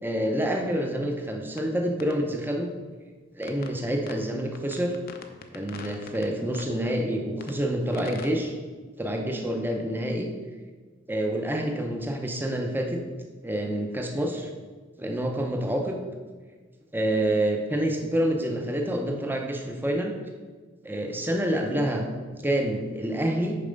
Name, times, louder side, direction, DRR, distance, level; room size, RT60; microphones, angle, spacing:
voice 1, 0.0-2.7 3.3-4.9 5.5-8.5 9.0-10.3 11.1-13.0 13.4-14.5 15.0-16.0 16.9-20.2 20.8-22.0 22.4-23.6, right 1 dB, 10° right, 2 dB, 0.6 m, -27 dB
sound 1, 1.6-1.7 2.0-2.2 3.4-3.8 4.1-4.2 4.5-6.3 6.5-6.7 7.4-7.6 7.9-8.3, left 5 dB, 45° left, 0.6 m, -42 dB
6.7 x 4.7 x 5.2 m, 1.4 s
head